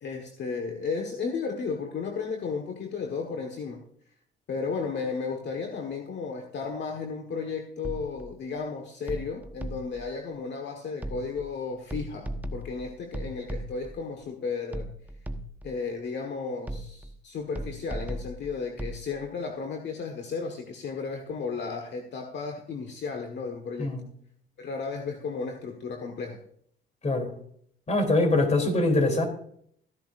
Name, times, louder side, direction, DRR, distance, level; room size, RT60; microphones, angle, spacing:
voice 1, 0.0-3.8 4.5-14.9 15.6-23.9 24.6-26.4, left 5 dB, 60° left, 4 dB, 1.5 m, -34 dB
sound 1, 7.8-8.4 9.1-10.1 11.0-11.5 11.9-14.0 14.7-15.8 16.7-17.2 17.6-19.1, right 1 dB, 10° right, 1.1 m, -37 dB
voice 2, 27.9-29.3, left 2 dB, 35° left, 5 dB, 3.1 m, -23 dB
15.0 x 11.0 x 2.5 m, 0.65 s
cardioid pair, 90°, 20 cm